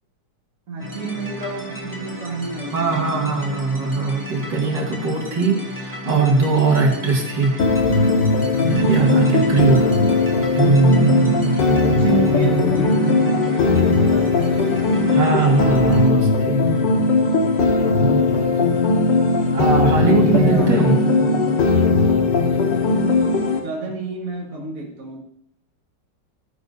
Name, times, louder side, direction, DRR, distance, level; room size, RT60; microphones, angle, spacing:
voice 1, 0.7-3.4 9.9-10.2 11.8-14.9 20.0-21.4 23.4-25.2, right 2 dB, 50° right, -2 dB, 2.0 m, -29 dB
sound 1, 0.8-16.1, left 2 dB, 10° right, 1.7 m, -34 dB
voice 2, 2.7-7.5 8.7-9.9 10.5-11.6 15.1-16.6 17.8-18.5 19.5-21.0, right 4 dB, 70° right, -1 dB, 2.7 m, -20 dB
sound 2, 7.6-23.6, left 3 dB, 75° left, 2.0 m, -18 dB
14.5 x 9.4 x 2.7 m, 0.73 s
omnidirectional pair, 2.0 m